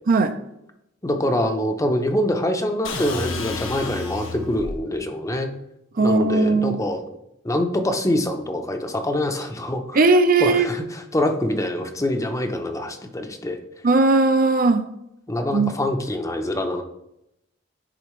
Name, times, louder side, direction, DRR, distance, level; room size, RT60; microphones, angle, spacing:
voice 1, 1.0-5.5 6.0-7.0 7.4-10.0 10.4-13.6 15.3-16.8, left 1 dB, 15° left, 5 dB, 0.6 m, -25 dB
sound 1, 2.8-4.8, left 3 dB, 80° left, 1.0 m, -31 dB
voice 2, 6.0-6.8 9.9-10.7 13.8-14.8 15.5-15.7, right 3 dB, 45° right, 8 dB, 0.5 m, -18 dB
10.0 x 3.9 x 3.1 m, 0.82 s
head